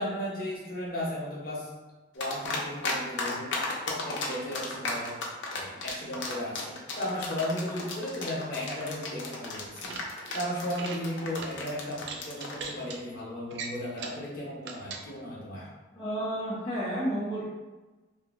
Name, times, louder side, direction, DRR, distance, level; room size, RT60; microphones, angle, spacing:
voice 1, 0.0-1.7 2.1-3.6 3.9-5.1 5.5-9.9 10.3-15.6, left 1 dB, 50° left, -5 dB, 0.8 m, -35 dB
sound 1, 2.2-2.9 3.2-12.6, left 3 dB, 80° left, 0.5 m, -34 dB
sound 2, 9.8-10.4 10.7-11.0 11.4-11.5 12.0-13.0 13.5-14.2 14.6-15.0, right 4 dB, 65° right, 0.3 m, -40 dB
voice 2, 15.9-17.4, right 1 dB, 20° left, -10 dB, 0.5 m, -31 dB
2.6 x 2.6 x 2.4 m, 1.2 s
head